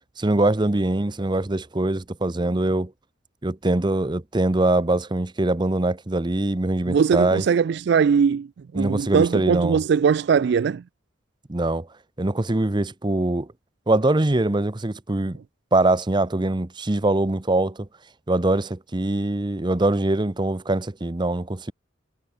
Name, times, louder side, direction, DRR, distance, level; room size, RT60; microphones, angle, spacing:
voice 1, 0.2-2.9 3.4-7.4 8.7-9.8 11.5-11.9 12.2-13.5 13.9-15.4 15.7-17.9 18.3-21.7, right 2 dB, 25° right, 0.8 m, -23 dB
voice 2, 6.9-8.5 8.7-10.8, right 6 dB, 60° right, 0.3 m, -20 dB
head